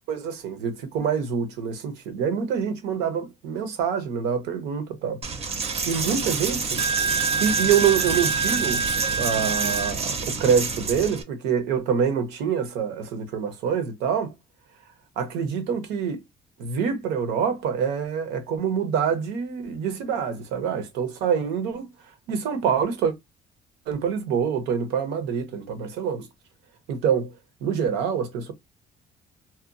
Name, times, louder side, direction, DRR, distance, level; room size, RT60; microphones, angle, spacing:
voice 1, 0.1-6.8 7.4-8.8 9.2-14.3 15.2-16.2 16.6-21.9 22.3-23.1 23.9-26.3 26.9-27.3 27.6-28.5, right 7 dB, 90° right, 0.7 m, -26 dB
Coin (dropping), 5.2-11.2, right 5 dB, 35° right, 0.6 m, -26 dB
2.7 x 2.2 x 2.5 m
cardioid pair, 110°, 17 cm